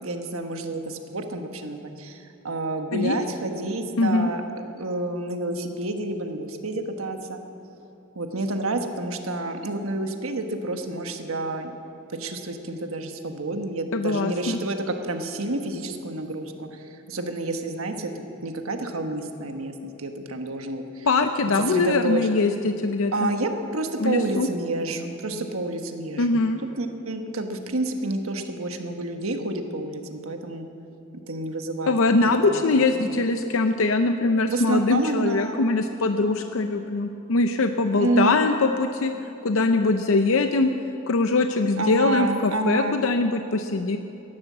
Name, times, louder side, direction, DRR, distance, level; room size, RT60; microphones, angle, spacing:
voice 1, 0.0-4.4 4.7-7.4 8.1-11.7 12.2-16.7 17.1-21.1 21.7-22.3 23.1-26.4 26.8-30.6 31.3-31.9 32.5-33.2 34.4-35.7 37.9-38.5 41.8-43.0, right 2 dB, 85° right, 5 dB, 1.3 m, -29 dB
voice 2, 4.0-4.3 13.9-14.6 21.1-23.3 24.0-24.5 26.2-26.6 31.9-39.1 39.4-40.7 41.1-44.0, left 3 dB, 75° left, 7 dB, 0.6 m, -22 dB
16.0 x 11.5 x 7.4 m, 2.9 s
head